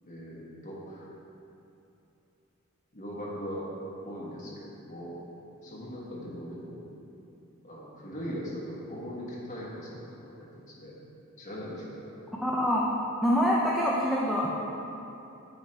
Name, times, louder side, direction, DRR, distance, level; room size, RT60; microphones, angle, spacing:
voice 1, 0.0-1.1 2.9-3.7 4.0-5.2 5.6-6.8 7.6-10.9 11.4-12.1, equal, 35° left, -6 dB, 1.4 m, -40 dB
voice 2, 12.4-12.8 13.2-14.5, equal, ahead, -5 dB, 0.4 m, -25 dB
9.5 x 4.3 x 3.2 m, 2.9 s
head